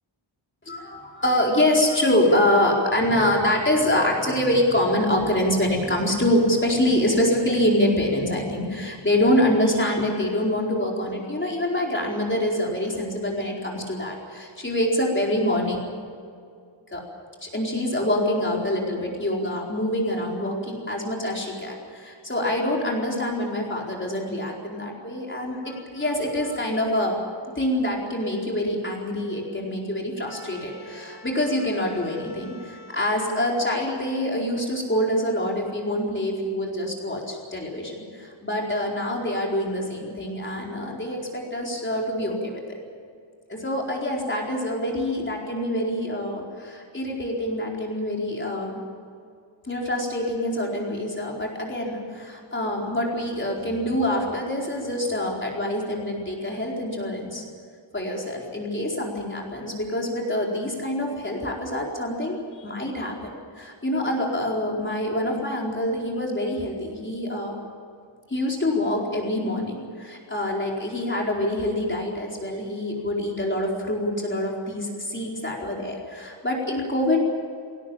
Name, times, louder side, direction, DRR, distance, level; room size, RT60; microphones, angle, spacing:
voice 1, 0.7-15.8 16.9-17.0 17.4-27.2 27.6-42.8 43.5-48.8 49.7-57.4 57.9-63.1 63.6-67.5 68.3-77.2, left 1 dB, 25° left, -1 dB, 4.4 m, -25 dB
20.0 x 18.0 x 8.8 m, 2.3 s
wide cardioid pair, 135°, 49 cm